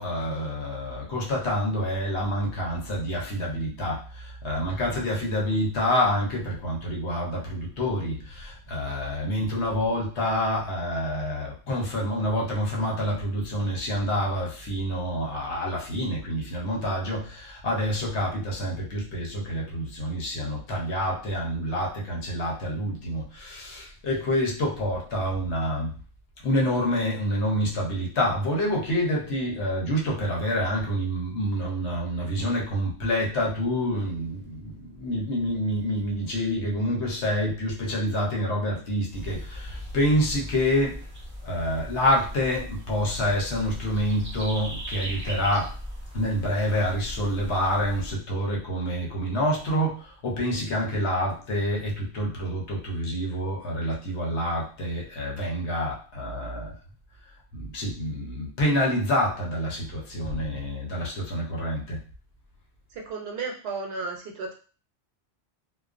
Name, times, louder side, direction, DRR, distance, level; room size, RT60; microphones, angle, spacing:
voice 1, 0.0-26.0 26.4-41.0 41.4-45.7 46.1-56.8 57.5-62.0, equal, 80° left, -2 dB, 1.0 m, -27 dB
sound 1, 39.1-48.1, equal, 15° right, 0.4 m, -38 dB
voice 2, 62.9-64.5, right 4 dB, 70° right, 1 dB, 0.8 m, -34 dB
2.3 x 2.2 x 2.4 m, 0.39 s
omnidirectional pair, 1.1 m